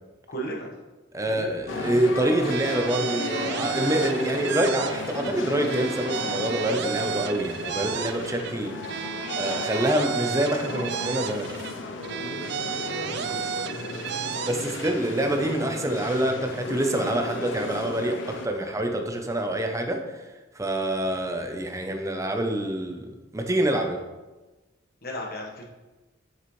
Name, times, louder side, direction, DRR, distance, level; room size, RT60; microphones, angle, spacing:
voice 1, 0.3-0.7 1.3-1.6 2.0-2.2 12.7-14.4 25.0-25.6, right 1 dB, 50° left, -1 dB, 1.4 m, -37 dB
voice 2, 1.1-8.7 9.4-11.5 14.5-20.0 20.5-24.0, right 1 dB, 15° right, 4 dB, 0.7 m, -26 dB
sound 1, 1.7-18.5, left 2 dB, 70° left, 0.7 m, -34 dB
sound 2, 2.4-5.3 5.6-8.5 8.8-11.7 12.0-14.9, right 7 dB, 60° right, 0.3 m, -33 dB
7.6 x 6.6 x 3.2 m, 1.2 s
head